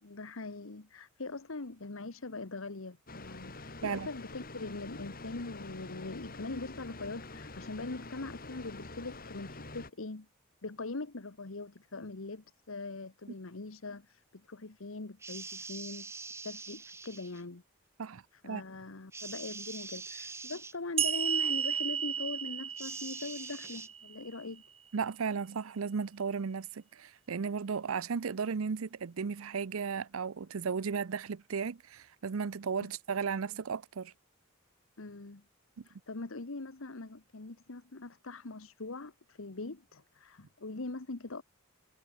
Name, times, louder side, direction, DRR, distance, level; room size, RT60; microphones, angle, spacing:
voice 1, 0.0-10.3 10.6-16.1 16.4-17.6 18.3-24.6 35.0-35.4 35.8-41.4, left 3 dB, 75° left, 1.3 m, -42 dB
sound 1, 3.1-9.9, left 2 dB, 45° left, 4.1 m, -46 dB
sound 2, 15.2-17.4 19.1-20.8 22.8-23.9, right 4 dB, 15° right, 0.7 m, -44 dB
voice 2, 18.0-18.6 24.9-34.1 35.8-35.9, right 5 dB, 80° right, 0.6 m, -35 dB
sound 3, 21.0-24.3, right 8 dB, 30° right, 1.1 m, -33 dB
head